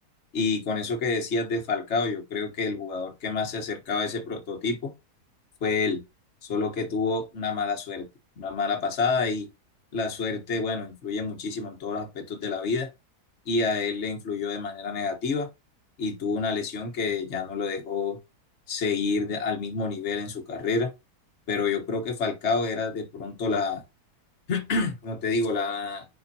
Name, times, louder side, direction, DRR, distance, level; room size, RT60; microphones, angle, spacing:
voice 1, 0.3-4.9 5.6-6.0 6.5-8.1 8.4-9.5 9.9-12.9 13.5-15.5 16.0-18.2 18.7-20.9 21.5-23.8 24.5-26.1, left 4 dB, 45° left, 1.7 m, -28 dB
10.0 x 4.3 x 2.9 m
omnidirectional pair, 1.7 m